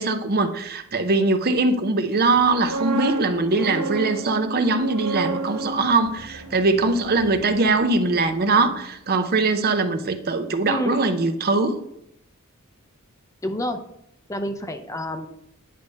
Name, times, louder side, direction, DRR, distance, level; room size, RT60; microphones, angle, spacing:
voice 1, 0.0-11.8, right 3 dB, 45° right, 8 dB, 0.7 m, -21 dB
sound 1, 2.4-8.3 8.6-8.8, right 2 dB, 85° right, 1.2 m, -32 dB
voice 2, 10.7-11.0 13.4-13.8 14.3-15.3, left 1 dB, 15° left, 6 dB, 0.6 m, -28 dB
10.0 x 3.4 x 5.3 m, 0.76 s
head